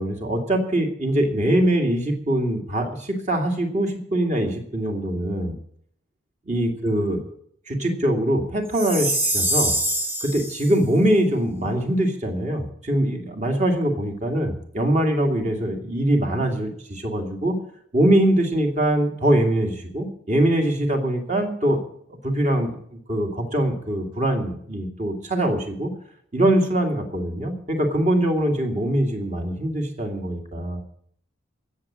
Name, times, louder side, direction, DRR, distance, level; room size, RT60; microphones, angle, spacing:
voice 1, 0.0-5.5 6.4-7.2 7.7-9.7 10.2-17.6 17.9-21.8 22.2-25.9 26.3-30.8, right 1 dB, 35° right, 4 dB, 2.4 m, -23 dB
Chime, 8.7-10.7, right 1 dB, 10° right, 1.5 m, -24 dB
16.5 x 7.5 x 9.8 m, 0.65 s
head